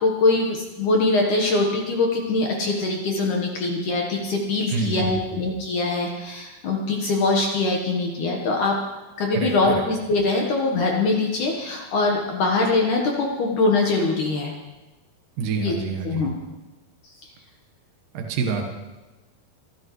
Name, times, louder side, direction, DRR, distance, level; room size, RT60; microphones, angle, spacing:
voice 1, 0.0-8.8 9.2-14.5 15.6-15.8 16.0-16.3, left 3 dB, 60° left, 0 dB, 2.3 m, -23 dB
voice 2, 4.7-5.2 9.3-9.8 15.4-16.2 18.1-18.6, right 5 dB, 65° right, 2 dB, 2.4 m, -27 dB
26.0 x 11.5 x 3.2 m, 1.1 s
omnidirectional pair, 4.8 m